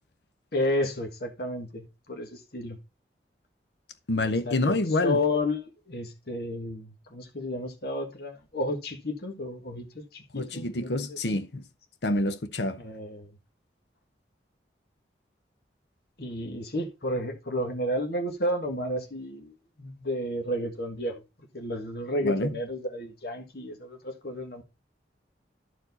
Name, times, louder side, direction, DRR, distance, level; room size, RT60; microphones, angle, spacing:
voice 1, 0.5-2.8 4.4-11.4 12.8-13.3 16.2-21.2 21.5-24.6, left 1 dB, 60° left, 1.5 m, -32 dB
voice 2, 4.1-5.2 10.3-11.6 12.0-12.8 22.2-22.5, left 2 dB, 75° left, 0.8 m, -27 dB
13.0 x 4.7 x 4.0 m
head